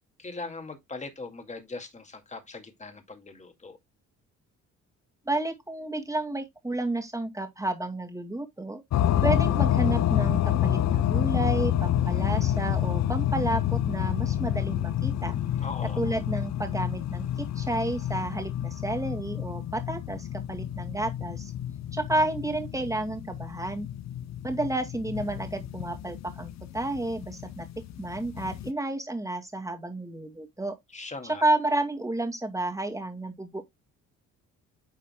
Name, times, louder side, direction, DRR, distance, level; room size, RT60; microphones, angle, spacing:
voice 1, 0.2-3.8 15.6-16.0 30.9-31.4, left 3 dB, 25° left, 2.2 m, -40 dB
voice 2, 5.2-8.8 9.2-15.4 16.0-21.5 21.9-23.9 24.4-27.7 28.0-30.8 31.4-33.6, right 2 dB, 10° right, 2.2 m, -31 dB
sound 1, 8.9-28.7, left 11 dB, 60° left, 0.7 m, -28 dB
10.0 x 5.6 x 2.3 m
cardioid pair, 90°, 30 cm